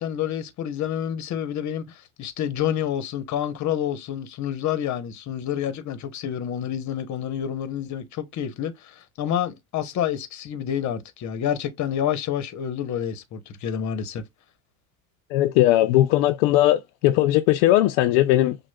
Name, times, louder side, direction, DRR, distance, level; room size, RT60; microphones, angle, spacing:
voice 1, 0.0-14.2, left 9 dB, 40° left, 1.0 m, -28 dB
voice 2, 15.3-18.6, left 14 dB, 70° left, 0.6 m, -19 dB
6.1 x 2.4 x 2.3 m
supercardioid pair, 110°, 42 cm